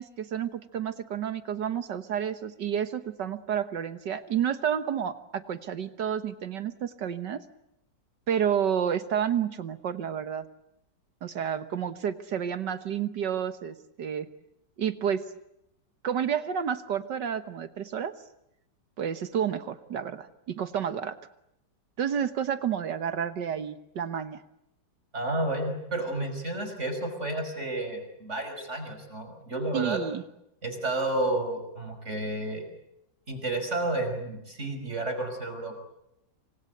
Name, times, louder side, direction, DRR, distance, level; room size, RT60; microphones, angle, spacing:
voice 1, 0.0-7.4 8.3-10.5 11.2-14.3 14.8-15.2 16.0-18.1 19.0-21.2 22.0-24.4 29.7-30.2, right 8 dB, 70° right, 12 dB, 1.8 m, -30 dB
voice 2, 25.1-30.0 30.6-32.6 33.3-35.8, right 2 dB, 35° right, 6 dB, 5.9 m, -31 dB
27.5 x 25.5 x 7.9 m, 0.82 s
omnidirectional pair, 2.0 m